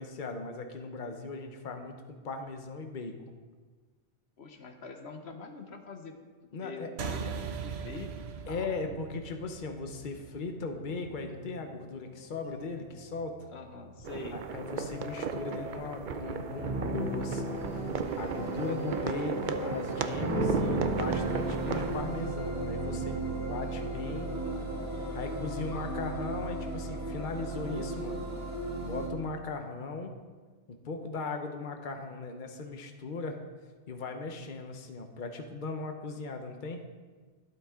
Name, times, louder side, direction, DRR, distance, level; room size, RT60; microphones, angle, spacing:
voice 1, 0.0-3.1 6.5-7.3 8.5-13.5 14.3-17.9 18.2-24.3 25.1-28.2 28.8-30.1 30.7-33.4 33.9-36.8, left 3 dB, 50° left, 5 dB, 1.1 m, -38 dB
voice 2, 4.4-6.1 6.6-9.0 13.5-14.4, left 4 dB, 80° left, 5 dB, 1.2 m, -44 dB
sound 1, 7.0-11.8, right 6 dB, 80° right, 1.0 m, -40 dB
sound 2, 10.8-29.1, right 2 dB, 15° right, 1.9 m, -36 dB
sound 3, 14.0-22.0, right 7 dB, 55° right, 0.7 m, -36 dB
12.0 x 12.0 x 3.7 m, 1.4 s
omnidirectional pair, 1.1 m